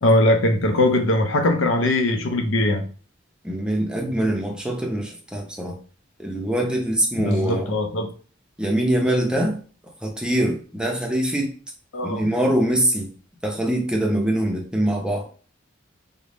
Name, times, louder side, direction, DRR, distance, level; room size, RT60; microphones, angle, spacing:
voice 1, 0.0-2.8 7.2-8.1 11.9-12.3, left 1 dB, 75° left, 5 dB, 0.6 m, -20 dB
voice 2, 3.4-5.8 6.2-7.7 8.6-9.6 10.0-11.5 12.0-13.1 13.4-15.2, right 1 dB, 5° right, 0 dB, 0.5 m, -23 dB
3.6 x 2.1 x 3.3 m, 0.40 s
head